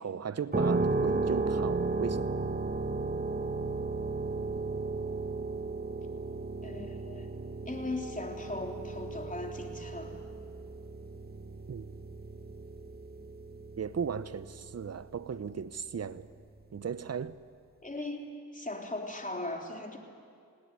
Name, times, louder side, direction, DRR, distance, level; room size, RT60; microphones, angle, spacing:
voice 1, 0.0-2.4 11.7-11.8 13.8-16.3 16.7-17.4, right 6 dB, 45° right, 0.9 m, -36 dB
sound 1, 0.5-15.2, right 3 dB, 25° right, 1.8 m, -34 dB
voice 2, 6.6-7.3 7.7-10.1 17.8-20.0, left 2 dB, 25° left, 3.7 m, -38 dB
20.0 x 17.5 x 9.7 m
supercardioid pair, 40°, 34 cm